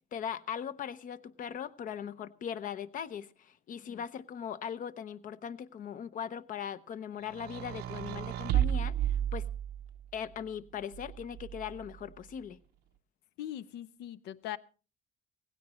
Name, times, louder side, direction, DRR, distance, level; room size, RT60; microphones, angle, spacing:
voice 1, 0.1-9.4 10.1-12.6, left 8 dB, 50° left, 0.8 m, -39 dB
sound 1, 7.3-10.0 10.9-11.9, right 11 dB, 80° right, 0.7 m, -33 dB
voice 2, 13.4-14.6, left 12 dB, 85° left, 0.6 m, -41 dB
18.0 x 16.0 x 3.1 m
cardioid pair, 110°, 17 cm